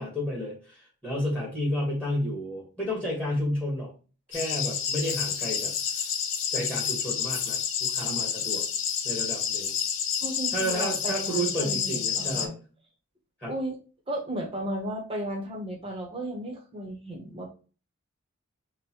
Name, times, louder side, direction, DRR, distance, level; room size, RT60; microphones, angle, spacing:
voice 1, 0.0-3.9 4.3-5.7 6.5-8.6 9.0-9.7 10.5-12.5 13.4-13.5, equal, 5° left, -4 dB, 1.7 m, -31 dB
sound 1, 4.3-12.5, left 8 dB, 60° left, 0.7 m, -29 dB
voice 2, 10.2-12.6 13.4-13.8 14.1-17.5, right 1 dB, 25° right, 0 dB, 1.1 m, -34 dB
6.6 x 2.5 x 3.1 m, 0.35 s
head